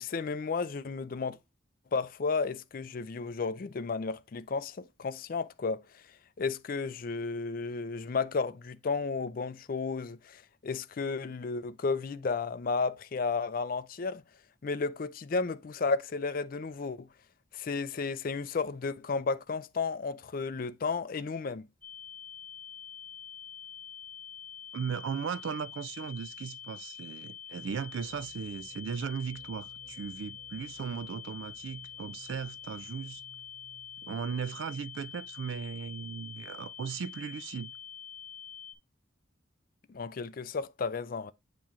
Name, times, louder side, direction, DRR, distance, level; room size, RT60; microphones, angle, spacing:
voice 1, 0.0-1.4 1.9-6.0 6.4-14.2 14.6-17.1 17.5-21.7 39.9-41.3, left 4 dB, 45° left, 0.4 m, -33 dB
sound 1, 21.8-38.8, left 9 dB, 10° left, 1.0 m, -46 dB
voice 2, 24.7-33.2 34.0-37.7, right 6 dB, 70° right, 0.3 m, -37 dB
sound 2, 27.5-37.2, equal, 20° right, 3.8 m, -60 dB
8.7 x 3.0 x 3.6 m
head